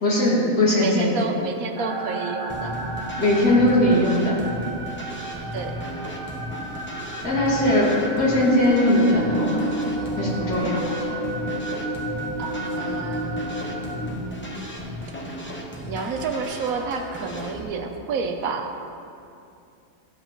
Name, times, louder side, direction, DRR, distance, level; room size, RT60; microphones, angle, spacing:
voice 1, 0.0-1.2 3.2-4.4 7.2-9.7 10.2-10.8, left 1 dB, 90° left, -7 dB, 2.9 m, -20 dB
voice 2, 0.8-2.8 5.5-5.8 12.4-14.6 15.9-18.7, right 4 dB, 70° right, 4 dB, 1.2 m, -30 dB
sound 1, 1.8-14.1, right 1 dB, 40° right, 1.1 m, -32 dB
sound 2, 2.5-17.6, equal, 10° left, 0.7 m, -35 dB
14.0 x 7.8 x 3.0 m, 2.5 s
omnidirectional pair, 1.6 m